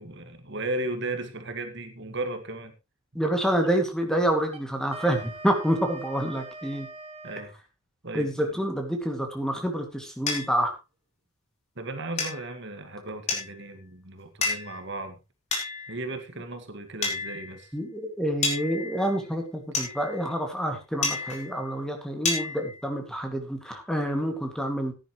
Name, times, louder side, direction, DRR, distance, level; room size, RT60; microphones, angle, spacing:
voice 1, 0.0-2.7 7.2-7.5 8.0-8.5 11.7-15.2 15.9-17.7, right 2 dB, 55° right, 1.7 m, -35 dB
voice 2, 3.1-6.9 8.1-10.7 17.7-24.9, right 1 dB, 5° left, 2.1 m, -28 dB
Wind instrument woodwind instrument, 4.5-7.5, right 3 dB, 25° right, 1.2 m, -42 dB
sound 1, 10.3-10.4 12.2-12.6 13.3-13.7 14.4-14.8 15.5-16.1 17.0-17.6 18.4-19.2 19.7-20.3 21.0-21.6 22.2-22.8, left 4 dB, 30° left, 4.1 m, -30 dB
16.5 x 10.5 x 3.1 m
head